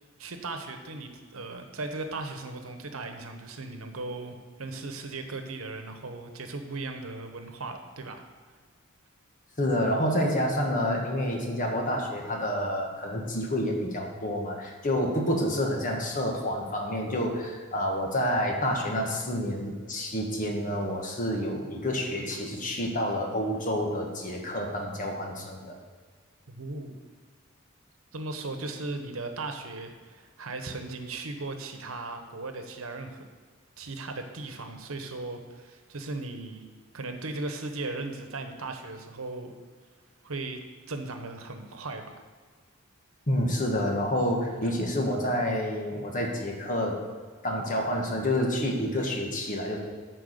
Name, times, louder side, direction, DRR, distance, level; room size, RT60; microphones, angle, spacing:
voice 1, 0.2-8.2 26.5-27.0 28.1-33.2 33.8-36.6 36.9-39.5 40.2-42.2, right 3 dB, 90° right, 6 dB, 1.0 m, -37 dB
voice 2, 9.6-25.8 43.3-47.0 47.4-49.8, equal, 40° left, 1 dB, 1.4 m, -28 dB
10.0 x 4.6 x 6.6 m, 1.5 s
head